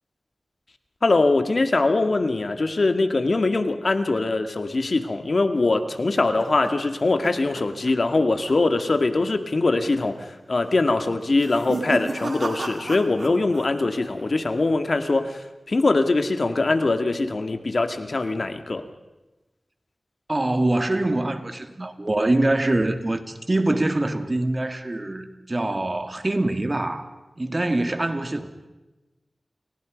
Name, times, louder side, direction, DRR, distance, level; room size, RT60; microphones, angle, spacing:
voice 1, 1.0-18.9, left 3 dB, 65° left, 2.2 m, -22 dB
sound 1, 5.7-8.2 8.5-8.8 9.1-9.2 10.0-10.4 11.2-13.7 13.9-14.5, right 2 dB, 60° right, 3.9 m, -34 dB
voice 2, 20.3-27.1 27.4-28.5, right 2 dB, 35° right, 2.5 m, -24 dB
30.0 x 28.5 x 5.3 m
wide cardioid pair, 55°, 0 cm